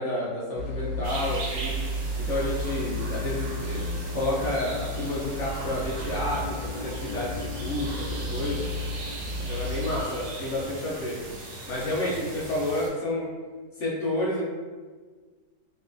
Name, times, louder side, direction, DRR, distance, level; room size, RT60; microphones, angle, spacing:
voice 1, 0.0-1.8 2.3-8.6 9.5-11.2 11.7-13.3 13.8-14.4, left 1 dB, 65° left, -6 dB, 0.8 m, -30 dB
sound 1, 0.6-10.0, left 1 dB, 90° left, 1.3 m, -33 dB
sound 2, 1.0-12.9, right 2 dB, 65° right, 0.8 m, -40 dB
sound 3, 5.7-12.6, equal, 80° right, 1.6 m, -45 dB
3.1 x 2.9 x 2.5 m, 1.5 s
omnidirectional pair, 1.8 m